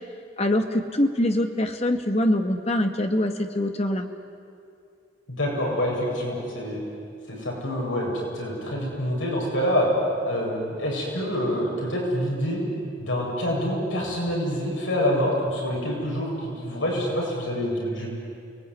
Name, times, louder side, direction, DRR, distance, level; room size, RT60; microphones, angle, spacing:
voice 1, 0.4-4.1, left 1 dB, 30° left, 6 dB, 1.7 m, -24 dB
voice 2, 5.3-6.8 7.3-9.9 10.2-12.6 13.0-18.2, equal, 80° left, -2 dB, 8.0 m, -26 dB
29.5 x 20.0 x 9.8 m, 2.4 s
head